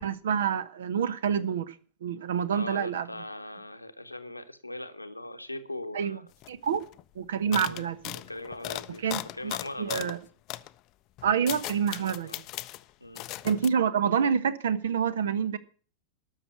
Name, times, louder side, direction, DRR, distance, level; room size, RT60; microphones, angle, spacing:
voice 1, 0.0-1.7 2.0-3.1 5.9-6.2 6.5-6.8 7.2-8.2 9.0-9.5 9.8-10.2 11.2-12.4 13.4-15.6, right 7 dB, 60° right, 1.0 m, -27 dB
voice 2, 2.5-6.3 7.6-7.9 8.1-9.1 9.3-10.2 12.2-12.4 13.0-13.3, left 1 dB, 85° left, 1.0 m, -40 dB
sound 1, 6.4-6.5 6.7-7.0 7.5-10.2 10.5-10.7 11.2-12.8 13.2-13.7, left 17 dB, 40° left, 0.5 m, -37 dB
12.5 x 6.7 x 9.1 m
figure-of-eight pair, 90°, 0 cm